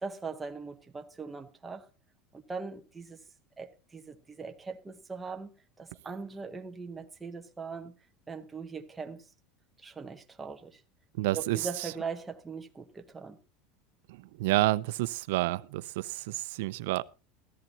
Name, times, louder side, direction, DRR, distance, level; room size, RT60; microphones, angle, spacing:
voice 1, 0.0-1.8 2.3-3.2 3.6-5.5 5.8-7.9 8.3-9.3 9.8-10.8 11.3-13.4, right 4 dB, 10° right, 0.8 m, -40 dB
voice 2, 11.2-11.7 14.4-17.0, right 18 dB, 70° right, 0.6 m, -29 dB
15.0 x 13.5 x 2.8 m
supercardioid pair, 175°, 0 cm